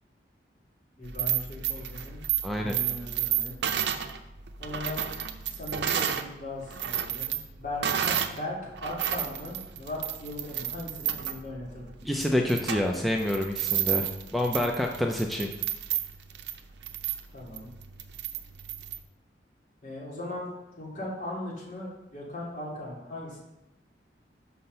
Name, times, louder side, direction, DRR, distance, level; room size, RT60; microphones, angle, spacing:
voice 1, 1.0-2.2 2.6-3.6 4.6-5.0 5.4-11.9 17.3-17.7 19.8-20.5 20.7-23.4, left 1 dB, 50° left, -6 dB, 3.2 m, -38 dB
sound 1, 1.0-6.3 6.6-8.4 8.8-19.0, right 10 dB, 75° right, 0.6 m, -31 dB
voice 2, 2.4-2.8 12.0-15.5, left 1 dB, ahead, 1 dB, 0.5 m, -27 dB
5.8 x 5.5 x 6.7 m, 0.95 s
head